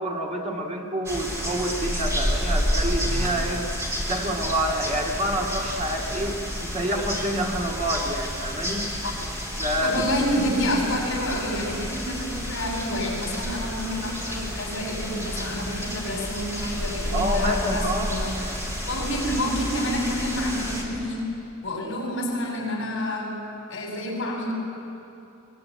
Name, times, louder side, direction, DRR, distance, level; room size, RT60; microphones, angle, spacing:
voice 1, 0.0-3.7 4.1-8.9 9.6-10.0 17.1-18.2 18.4-18.6, equal, 30° right, -1 dB, 2.3 m, -28 dB
sound 1, 1.1-20.8, equal, 15° right, 4.2 m, -30 dB
voice 2, 9.8-18.3 18.8-21.3 21.6-23.4 23.7-24.5, left 1 dB, 60° left, -2 dB, 8.0 m, -28 dB
23.5 x 22.0 x 9.7 m, 2.8 s
head